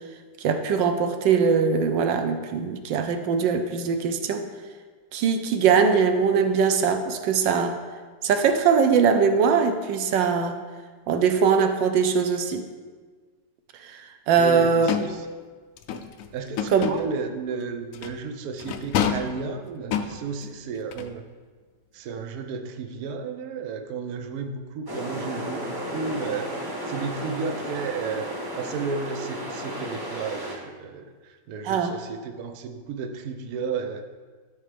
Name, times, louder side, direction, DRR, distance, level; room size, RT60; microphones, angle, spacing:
voice 1, 0.4-4.4 5.1-7.8 8.2-10.6 11.1-12.6 13.8-14.0 14.3-14.9 16.7-17.0 31.7-31.9, right 6 dB, 80° right, 7 dB, 1.3 m, -21 dB
voice 2, 14.4-15.3 16.3-21.3 21.9-28.3 28.6-34.1, right 5 dB, 65° right, 6 dB, 1.0 m, -33 dB
sound 1, 14.9-15.2 15.8-17.1 17.9-18.2 18.6-19.4 19.9-20.5 20.9-21.1, left 8 dB, 75° left, 0.7 m, -28 dB
sound 2, 24.9-30.6, equal, 20° right, 0.7 m, -33 dB
13.0 x 4.7 x 3.3 m, 1.4 s
omnidirectional pair, 2.0 m